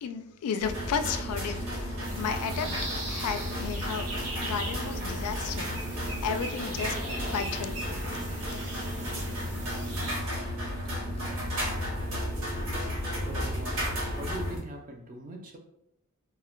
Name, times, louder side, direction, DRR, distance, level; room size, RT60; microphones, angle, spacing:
voice 1, 0.0-2.7 3.0-4.1 4.4-7.0 7.3-7.8, left 6 dB, 85° left, 8 dB, 0.3 m, -33 dB
sound 1, 0.6-14.6, equal, 65° right, 1.0 m, -33 dB
Fill (with liquid), 0.8-7.5 8.0-11.3, equal, 25° left, 0.6 m, -50 dB
sound 2, 2.0-10.1, right 1 dB, 90° right, 0.9 m, -40 dB
voice 2, 13.2-15.6, right 1 dB, 35° right, 3 dB, 0.4 m, -41 dB
2.1 x 2.1 x 3.6 m, 0.81 s
head